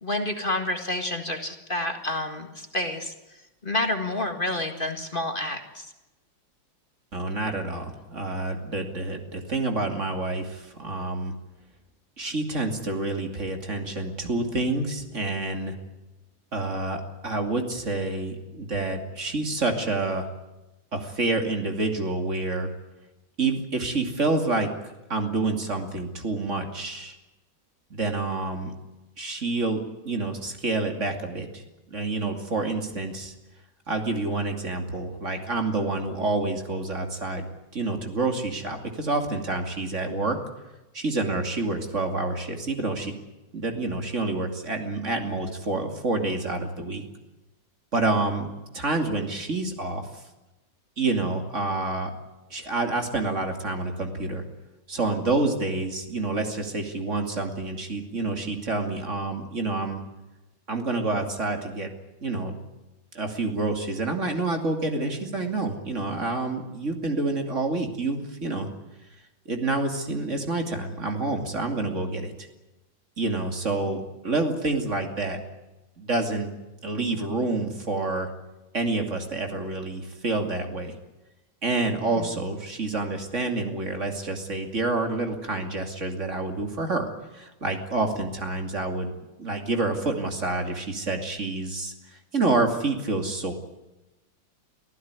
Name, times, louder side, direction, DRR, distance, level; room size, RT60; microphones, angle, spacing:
voice 1, 0.0-3.1 3.6-5.9 82.1-82.3, left 1 dB, 30° left, 5 dB, 2.0 m, -29 dB
voice 2, 7.1-11.3 12.2-15.8 16.5-20.3 20.9-22.7 23.4-27.2 27.9-28.7 29.2-31.6 31.9-33.3 33.9-37.5 37.7-40.4 40.9-43.1 43.5-47.0 47.9-48.5 48.7-50.2 51.0-52.1 52.5-54.4 54.9-60.0 60.7-61.9 62.2-62.6 63.1-68.7 69.5-72.5 73.2-75.4 76.0-76.5 76.8-78.3 78.7-81.0 81.6-89.1 89.4-91.9 92.3-93.5, right 3 dB, 40° right, 4 dB, 2.9 m, -28 dB
24.5 x 15.0 x 9.7 m, 1.0 s
omnidirectional pair, 2.0 m